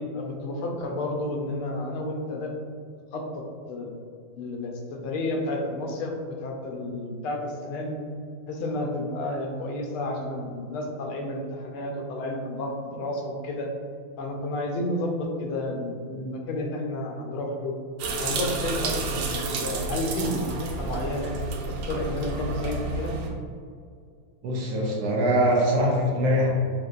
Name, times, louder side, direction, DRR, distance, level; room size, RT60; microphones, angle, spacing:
voice 1, 0.0-2.7 3.1-3.4 3.7-3.9 4.3-4.7 5.0-6.1 6.4-8.0 8.5-13.7 14.2-17.7 18.2-21.3 21.9-23.1, left 1 dB, 85° left, 2 dB, 1.5 m, -31 dB
sound 1, 18.0-23.3, right 3 dB, 85° right, 1.5 m, -30 dB
voice 2, 24.4-26.5, equal, 65° right, -3 dB, 1.3 m, -22 dB
5.9 x 2.9 x 2.5 m, 2.3 s
omnidirectional pair, 2.3 m